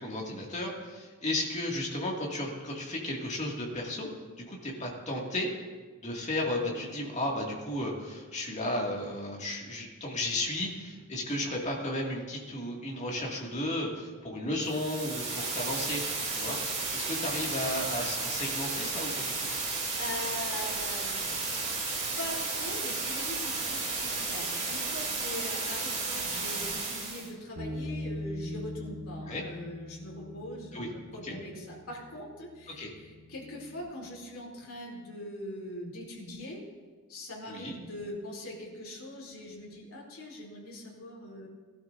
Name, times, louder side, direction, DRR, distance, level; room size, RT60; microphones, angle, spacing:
voice 1, 0.0-5.5 6.0-16.0 16.3-16.6 16.9-19.5 29.2-29.4 30.7-30.9 31.2-31.4 32.8-32.9 37.5-37.7, left 1 dB, 30° left, -1 dB, 2.1 m, -34 dB
sound 1, 14.6-27.3, right 3 dB, 30° right, 2.8 m, -33 dB
voice 2, 20.0-21.3 22.2-30.8 31.1-36.6 37.1-41.5, left 1 dB, 70° left, -3 dB, 3.0 m, -41 dB
Bass guitar, 27.6-33.8, left 1 dB, 55° right, 2.0 m, -42 dB
18.0 x 12.0 x 2.6 m, 1.4 s
head